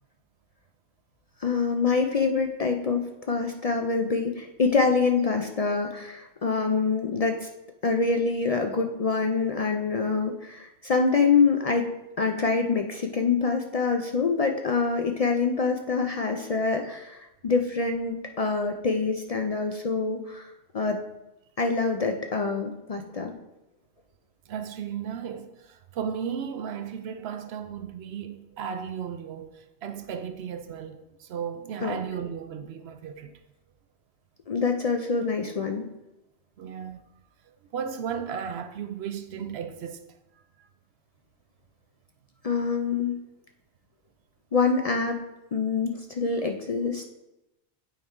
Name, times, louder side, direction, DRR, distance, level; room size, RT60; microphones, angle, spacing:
voice 1, 1.4-7.5 7.8-11.9 12.2-21.0 21.6-23.3 31.8-32.0 34.5-35.9 42.4-43.2 44.5-45.2 45.5-47.1, left 4 dB, 50° left, 0.5 m, -25 dB
voice 2, 24.5-33.4 36.6-37.0 37.5-40.0 40.6-40.7, right 7 dB, 75° right, 0.9 m, -35 dB
8.5 x 4.4 x 3.6 m
omnidirectional pair, 1.1 m